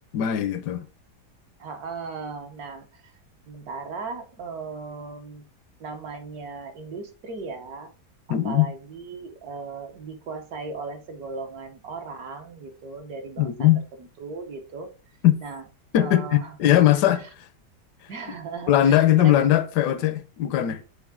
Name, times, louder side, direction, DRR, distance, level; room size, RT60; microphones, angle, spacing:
voice 1, 0.1-0.9 8.3-8.7 13.4-13.8 15.2-15.4 15.9-17.5 18.7-20.8, left 12 dB, 80° left, 1.2 m, -20 dB
voice 2, 1.6-3.1 3.5-5.4 5.8-7.9 8.3-13.7 14.2-14.9 15.4-15.6 15.9-16.8 17.2-17.3 18.1-19.4, right 4 dB, 65° right, 1.4 m, -37 dB
7.0 x 4.6 x 3.6 m
omnidirectional pair, 1.8 m